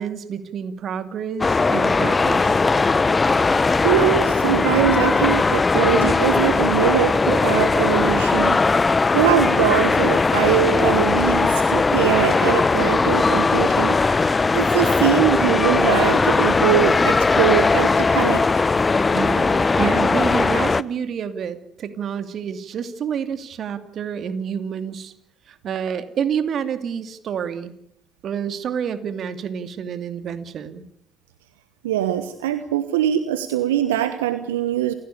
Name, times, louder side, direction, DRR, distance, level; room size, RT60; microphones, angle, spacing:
voice 1, 0.0-2.6 19.1-25.1 25.5-27.7 28.2-30.9, right 7 dB, 55° right, 10 dB, 2.6 m, -28 dB
sound 1, 1.4-20.8, left 4 dB, 30° left, 0.9 m, -19 dB
voice 2, 3.8-8.6 9.1-14.0 14.5-18.5 31.8-34.9, right 11 dB, 85° right, 12 dB, 1.2 m, -22 dB
29.0 x 16.5 x 8.5 m, 0.73 s
hypercardioid pair, 55°, 0 cm